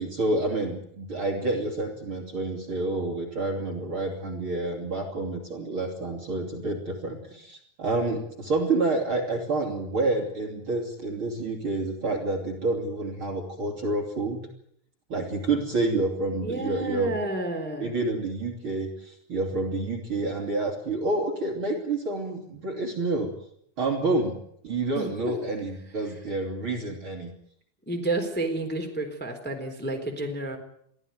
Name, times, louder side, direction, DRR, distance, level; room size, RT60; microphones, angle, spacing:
voice 1, 0.0-14.4 15.1-17.1 17.8-23.3 23.8-24.3 24.6-27.3, right 2 dB, 35° right, 4 dB, 3.4 m, -28 dB
voice 2, 16.4-17.9 24.9-25.3 27.9-30.6, right 2 dB, 5° left, 3 dB, 3.2 m, -30 dB
23.0 x 15.5 x 9.4 m, 0.70 s
omnidirectional pair, 4.6 m